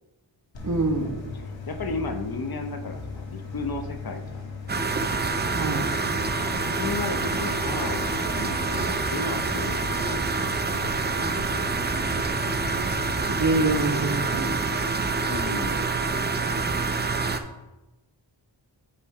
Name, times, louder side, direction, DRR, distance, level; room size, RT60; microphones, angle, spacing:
sound 1, 0.5-14.4, left 4 dB, 75° left, 1.5 m, -37 dB
voice 1, 0.6-1.2 5.5-5.9 13.3-15.1, right 3 dB, 40° right, 2 dB, 1.1 m, -26 dB
voice 2, 1.3-4.4 6.6-9.8 10.8-11.4 15.2-15.9, left 3 dB, 50° left, 5 dB, 0.9 m, -34 dB
sound 2, 4.7-17.4, right 4 dB, 25° right, 0.5 m, -27 dB
9.8 x 3.3 x 4.7 m, 1.1 s
wide cardioid pair, 90°, 45 cm